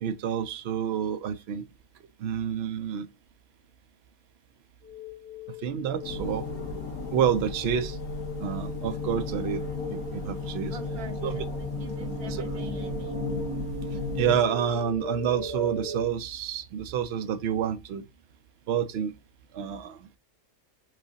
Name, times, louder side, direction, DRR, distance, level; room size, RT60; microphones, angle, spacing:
voice 1, 0.0-1.7 2.2-3.1 5.6-6.5 7.1-8.0 8.4-10.8 11.2-11.4 14.2-18.0 18.7-19.1 19.5-20.2, right 8 dB, 65° right, 0.6 m, -29 dB
sound 1, 4.8-16.0, equal, 45° left, 2.4 m, -39 dB
sound 2, 6.0-14.4, left 3 dB, 65° left, 1.6 m, -34 dB
voice 2, 10.7-13.3, right 5 dB, 90° right, 1.5 m, -46 dB
4.9 x 3.8 x 2.7 m
omnidirectional pair, 1.5 m